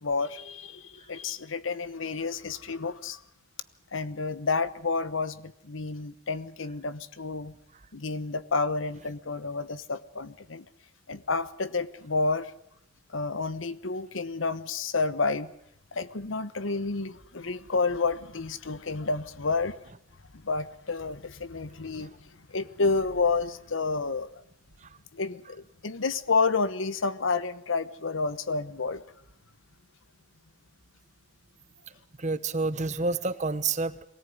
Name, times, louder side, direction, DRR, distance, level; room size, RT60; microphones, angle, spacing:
voice 1, 0.0-3.2 3.9-7.5 7.9-10.6 11.1-12.5 13.1-15.5 15.9-19.8 20.4-22.1 22.5-24.4 25.1-29.0, left 4 dB, 80° left, 15 dB, 1.1 m, -30 dB
voice 2, 32.2-34.0, right 3 dB, 35° right, 13 dB, 1.1 m, -28 dB
23.5 x 18.0 x 9.4 m, 0.77 s
head